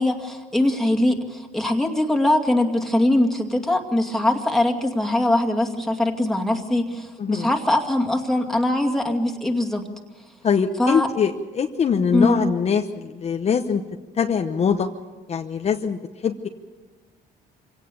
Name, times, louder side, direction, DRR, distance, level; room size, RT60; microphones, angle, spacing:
voice 1, 0.0-9.8 10.8-11.1 12.1-12.5, left 1 dB, ahead, 0 dB, 2.3 m, -22 dB
voice 2, 10.4-13.8 14.2-14.9 15.3-16.5, left 6 dB, 40° left, 5 dB, 1.0 m, -23 dB
25.5 x 17.5 x 6.9 m, 1.2 s
cardioid pair, 110°, 17 cm